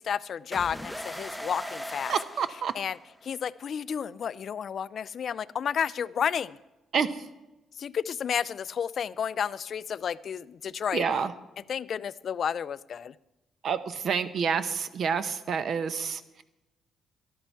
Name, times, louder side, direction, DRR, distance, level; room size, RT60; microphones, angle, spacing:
voice 1, 0.0-2.1 2.7-6.6 7.8-11.0 11.7-13.1, left 7 dB, 55° left, 18 dB, 0.4 m, -31 dB
sound 1, 0.5-3.3, equal, ahead, 0.6 m, -39 dB
voice 2, 2.1-2.7 6.9-7.1 10.9-11.3 13.6-16.4, right 6 dB, 60° right, 12 dB, 0.8 m, -28 dB
13.0 x 11.5 x 4.6 m, 1.0 s
cardioid pair, 90°, 0 cm